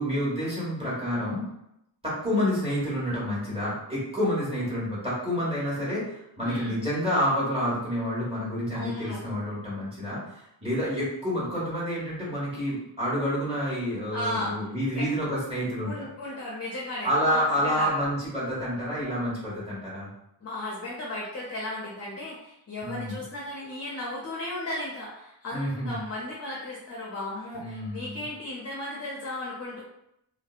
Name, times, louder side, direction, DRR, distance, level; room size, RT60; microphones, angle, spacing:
voice 1, 0.0-1.4 2.0-16.0 17.0-20.1 22.8-23.2 25.5-26.0 27.5-28.2, equal, 15° right, -8 dB, 1.3 m, -28 dB
voice 2, 6.4-6.8 8.7-9.2 14.1-14.6 14.9-15.1 15.8-18.0 20.4-29.8, left 1 dB, 40° left, -5 dB, 0.5 m, -35 dB
2.6 x 2.1 x 2.4 m, 0.81 s
wide cardioid pair, 85°, 40 cm